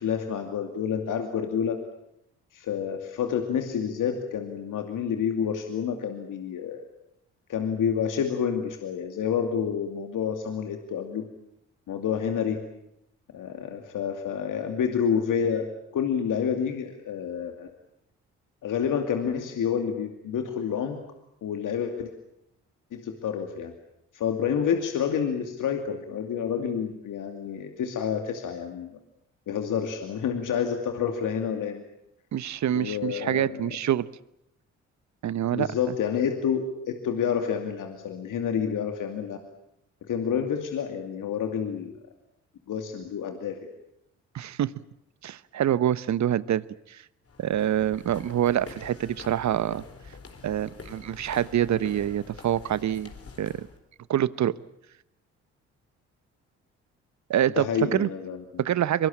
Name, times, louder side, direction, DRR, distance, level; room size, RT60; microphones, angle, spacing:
voice 1, 0.0-1.8 2.5-6.9 7.5-11.3 11.9-12.6 13.3-17.7 18.6-21.0 21.4-22.1 22.9-23.7 24.1-29.0 29.5-31.8 32.7-33.6 35.5-39.4 40.0-42.0 42.7-43.6 57.5-58.4, left 7 dB, 65° left, 5 dB, 2.6 m, -29 dB
voice 2, 32.3-34.1 35.2-35.7 44.3-44.7 45.2-47.0 47.4-49.8 50.4-53.1 53.4-53.7 54.1-54.5 57.3-58.1 58.6-59.1, right 11 dB, 55° right, 19 dB, 1.0 m, -26 dB
sound 1, 47.2-53.8, left 4 dB, 40° left, 4.1 m, -46 dB
24.0 x 23.0 x 8.7 m, 0.80 s
hypercardioid pair, 45°, 34 cm